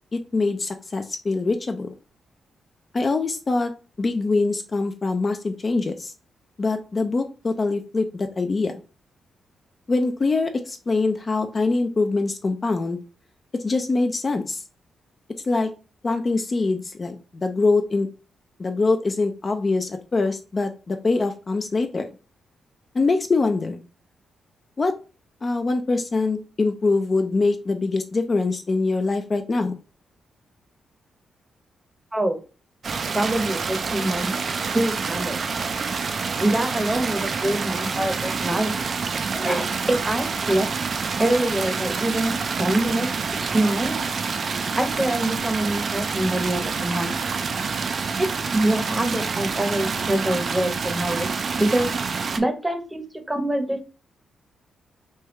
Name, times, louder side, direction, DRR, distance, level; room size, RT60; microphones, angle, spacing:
voice 1, 0.1-1.9 2.9-3.7 4.0-6.1 6.6-8.8 9.9-13.0 13.5-14.6 15.4-15.7 16.0-18.1 18.6-22.1 22.9-23.8 24.8-24.9 25.4-29.8, left 3 dB, 40° left, 7 dB, 0.4 m, -23 dB
sound 1, 32.8-52.4, right 5 dB, 55° right, 0.4 m, -27 dB
voice 2, 33.1-34.4 34.7-35.4 36.4-39.0 39.3-40.7 41.2-43.1 43.4-44.0 44.7-47.1 48.5-51.3 51.5-51.9 52.4-53.8, right 1 dB, 15° right, 6 dB, 0.8 m, -25 dB
3.3 x 2.3 x 3.0 m, 0.35 s
cardioid pair, 60°, 0 cm